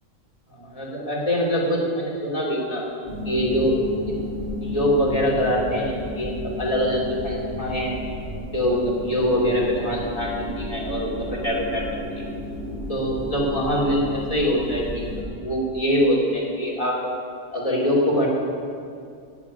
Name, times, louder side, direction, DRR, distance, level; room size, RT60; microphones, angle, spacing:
voice 1, 0.5-2.8 3.2-3.8 4.1-4.2 4.6-8.0 8.5-11.8 12.1-12.2 12.9-15.0 15.4-17.1 17.5-18.3, equal, 30° left, -5 dB, 3.1 m, -24 dB
sound 1, 3.1-15.2, left 1 dB, 35° right, 3.2 m, -33 dB
11.0 x 7.7 x 9.8 m, 2.4 s
omnidirectional pair, 1.2 m